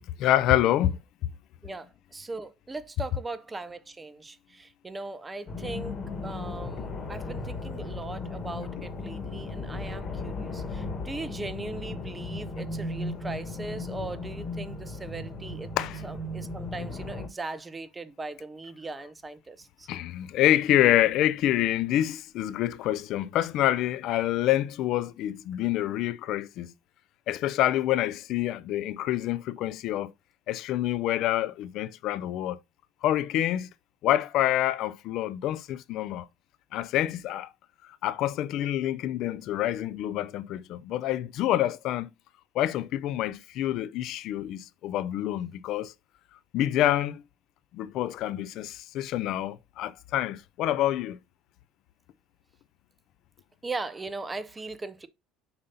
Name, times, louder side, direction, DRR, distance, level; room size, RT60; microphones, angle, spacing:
voice 1, 0.2-1.0 15.8-16.0 19.9-26.7 27.3-30.1 30.5-32.6 33.0-33.7 34.0-36.3 36.7-37.5 38.0-42.1 42.5-45.9 46.5-47.2 47.7-51.2, left 13 dB, 55° left, 0.3 m, -27 dB
voice 2, 1.6-15.7 16.0-19.9 53.6-55.1, right 3 dB, 15° right, 0.5 m, -39 dB
sound 1, 5.5-17.3, left 2 dB, 30° left, 1.2 m, -36 dB
6.7 x 2.7 x 5.5 m
cardioid pair, 145°, 0 cm